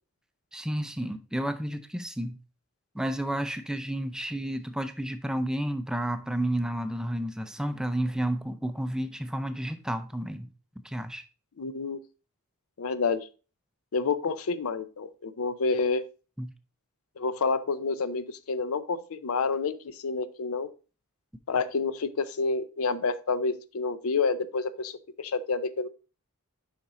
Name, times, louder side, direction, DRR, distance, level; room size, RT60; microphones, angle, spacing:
voice 1, 0.5-2.4 2.9-10.5 10.8-11.2 16.4-16.5, right 1 dB, 5° right, 0.4 m, -31 dB
voice 2, 11.6-12.0 12.8-13.3 13.9-16.0 17.2-20.7 21.5-24.9 25.2-25.9, left 4 dB, 70° left, 0.6 m, -29 dB
7.1 x 5.1 x 3.7 m
head